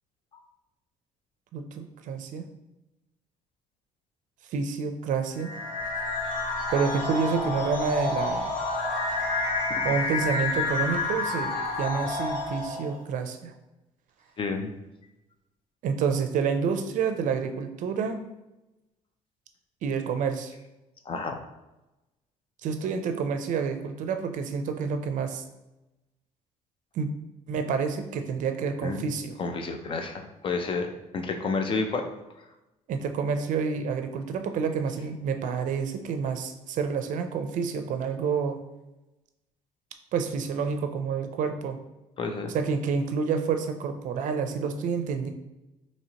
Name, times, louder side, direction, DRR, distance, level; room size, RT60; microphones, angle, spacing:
voice 1, 1.5-2.5 4.5-5.5 6.7-8.5 9.8-13.5 15.8-18.2 19.8-20.5 22.6-25.4 26.9-27.1 27.5-29.4 32.9-38.6 40.1-41.8 42.5-45.3, right 6 dB, 65° right, 7 dB, 0.5 m, -28 dB
sound 1, 5.4-13.0, left 3 dB, 70° left, 1.3 m, -29 dB
voice 2, 14.4-14.7 21.1-21.4 28.8-29.0 29.4-32.1 42.2-42.5, left 4 dB, 40° left, 5 dB, 0.5 m, -30 dB
4.3 x 2.9 x 2.8 m, 0.99 s
cardioid pair, 115°, 14 cm